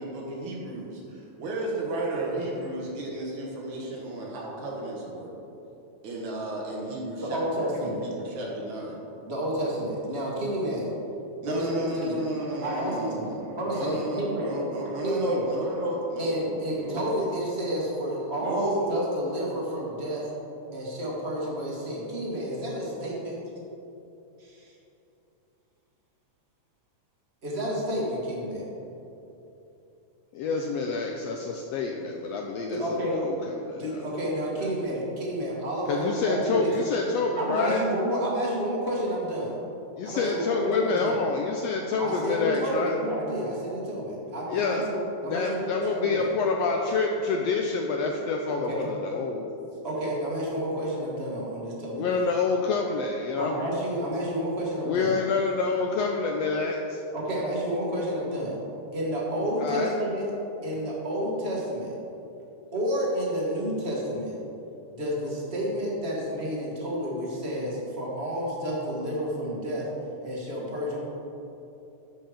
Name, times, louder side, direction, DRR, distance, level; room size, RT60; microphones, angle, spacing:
voice 1, 0.0-5.3 6.0-9.0 11.4-17.1 18.4-18.8, right 1 dB, 75° right, -4 dB, 2.7 m, -33 dB
voice 2, 7.2-8.0 9.3-10.9 11.4-12.2 12.6-13.3 13.6-14.5 15.0-15.4 16.2-20.3 20.7-23.4 24.4-24.7 27.4-28.7 32.7-33.2 33.8-36.7 37.4-39.5 40.0-41.2 42.0-46.3 48.5-48.9 49.8-52.2 53.4-55.2 57.1-58.6 58.9-60.3 60.6-61.9 62.7-64.4 64.9-69.9 70.2-71.0, equal, 25° right, -4 dB, 1.5 m, -30 dB
voice 3, 30.3-34.0 34.6-34.7 35.9-37.8 40.0-42.9 44.5-44.9 45.2-49.5 52.0-53.6 54.8-57.0 59.6-60.0, left 4 dB, 80° left, 2 dB, 1.5 m, -27 dB
13.0 x 5.6 x 5.0 m, 2.9 s
omnidirectional pair, 3.4 m